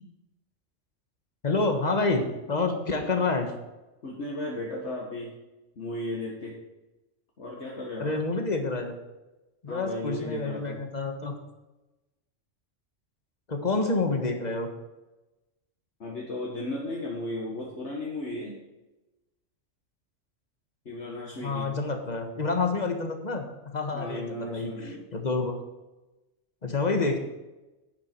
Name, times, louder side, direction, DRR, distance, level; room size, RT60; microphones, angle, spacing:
voice 1, 1.4-3.5 8.0-9.0 9.6-11.3 13.5-14.7 21.4-25.5 26.6-27.2, left 3 dB, 35° left, 5 dB, 1.5 m, -28 dB
voice 2, 4.0-5.3 5.8-6.6 7.4-8.1 9.7-10.8 16.0-18.6 20.9-21.7 23.9-25.0, left 1 dB, 65° left, -3 dB, 1.9 m, -35 dB
11.0 x 9.3 x 4.6 m, 1.1 s
omnidirectional pair, 1.3 m